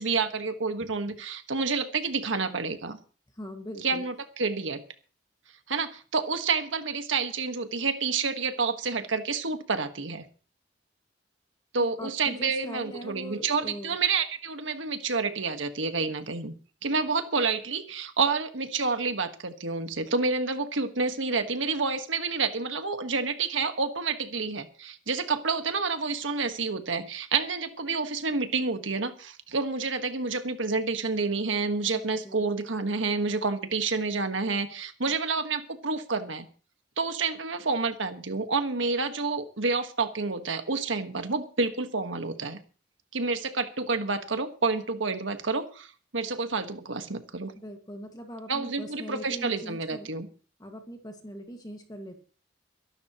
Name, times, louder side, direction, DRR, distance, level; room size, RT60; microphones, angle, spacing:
voice 1, 0.0-3.0 3.8-4.8 5.7-10.3 11.7-16.5 16.8-36.5 37.0-42.6 43.1-47.5 48.5-50.3, right 4 dB, 85° right, 8 dB, 1.6 m, -29 dB
voice 2, 3.4-4.0 12.0-14.0 32.2-32.5 35.0-35.2 47.6-50.1 50.6-52.2, equal, 20° left, 4 dB, 1.9 m, -41 dB
23.5 x 11.5 x 3.1 m, 0.37 s
head